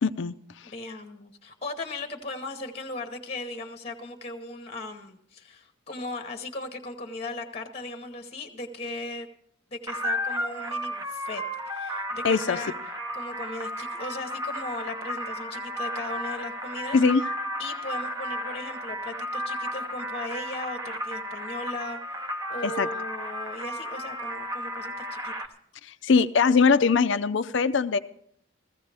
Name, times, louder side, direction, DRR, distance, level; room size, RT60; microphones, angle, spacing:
voice 1, 0.0-0.3 12.2-12.6 16.9-17.2 22.6-22.9 25.8-28.0, left 5 dB, 60° left, 11 dB, 0.5 m, -21 dB
voice 2, 0.6-9.3 9.7-12.8 13.1-17.0 17.6-22.0 22.5-25.5, left 2 dB, 30° left, 7 dB, 0.9 m, -37 dB
sound 1, 9.9-25.5, equal, 15° right, 0.8 m, -33 dB
15.5 x 15.0 x 3.4 m, 0.67 s
head